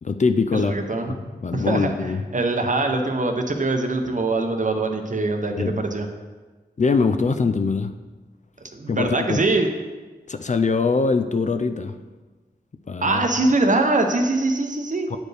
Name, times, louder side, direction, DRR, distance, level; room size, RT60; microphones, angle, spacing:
voice 1, 0.0-0.7 1.1-2.2 5.5-5.7 6.8-7.9 8.9-9.4 10.3-12.0 12.9-13.3 15.1-15.2, left 4 dB, 45° left, 8 dB, 0.4 m, -23 dB
voice 2, 0.5-1.2 1.5-6.1 8.7-9.7 13.0-15.1, right 2 dB, 45° right, 5 dB, 0.7 m, -23 dB
8.8 x 4.4 x 3.3 m, 1.3 s
wide cardioid pair, 70°, 18 cm